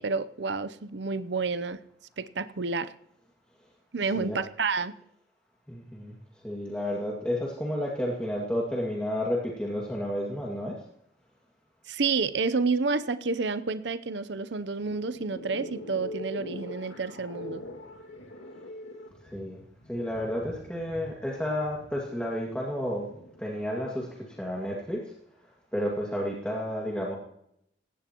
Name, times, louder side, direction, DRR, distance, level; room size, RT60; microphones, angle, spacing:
voice 1, 0.0-1.8 2.2-2.9 3.9-4.9 11.9-17.6, right 4 dB, 70° right, 13 dB, 0.7 m, -29 dB
voice 2, 5.7-6.1 6.4-10.8 19.3-19.6 19.9-23.1 23.4-25.0 25.7-27.2, equal, 5° left, -3 dB, 2.1 m, -31 dB
sound 1, 14.6-23.4, left 1 dB, 90° left, 2.3 m, -43 dB
19.0 x 16.5 x 3.0 m, 0.75 s
head